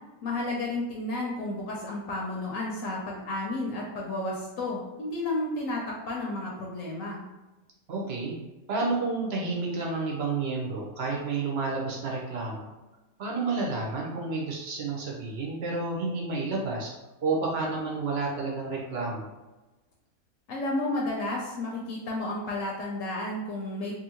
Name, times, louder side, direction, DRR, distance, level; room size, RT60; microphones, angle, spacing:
voice 1, 0.2-7.2 20.5-23.9, left 2 dB, 70° left, -2 dB, 0.9 m, -32 dB
voice 2, 7.9-8.3 8.7-12.7 13.2-16.9 17.2-19.3, right 3 dB, 55° right, -2 dB, 0.8 m, -30 dB
2.7 x 2.6 x 2.8 m, 1.1 s
omnidirectional pair, 1.5 m